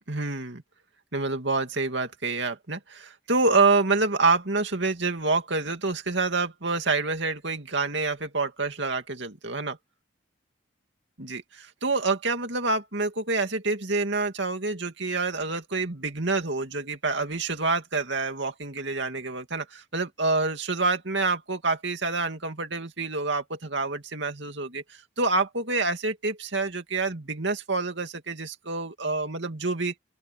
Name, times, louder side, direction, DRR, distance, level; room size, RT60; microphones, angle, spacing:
voice 1, 0.1-0.6 1.1-9.8 11.2-29.9, right 3 dB, 60° right, 2.6 m, -27 dB
open air
head